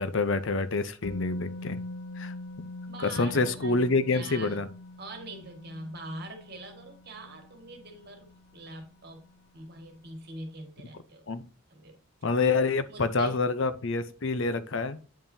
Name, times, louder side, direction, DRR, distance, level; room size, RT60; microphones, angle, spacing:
voice 1, 0.0-1.8 2.2-2.3 3.2-4.7 11.3-11.4 12.2-15.0, left 3 dB, 60° left, 13 dB, 0.6 m, -27 dB
Musical instrument, 1.0-8.9 9.2-9.4, left 2 dB, 85° left, 0.9 m, -43 dB
voice 2, 2.9-4.6 5.0-9.3 9.5-11.3 11.7-12.0 12.9-13.4, right 2 dB, 45° right, 5 dB, 1.8 m, -43 dB
8.8 x 5.6 x 2.7 m, 0.38 s
head